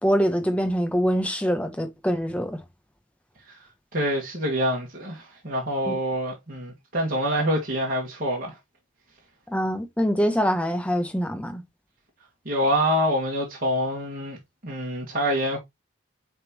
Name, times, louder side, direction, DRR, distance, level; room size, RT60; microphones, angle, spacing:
voice 1, 0.0-2.6 5.9-6.0 9.5-11.6, equal, 5° left, 0.9 m, -24 dB
voice 2, 3.9-8.6 12.4-14.4 14.6-15.6, equal, 45° right, 1.7 m, -26 dB
9.4 x 3.7 x 2.9 m
head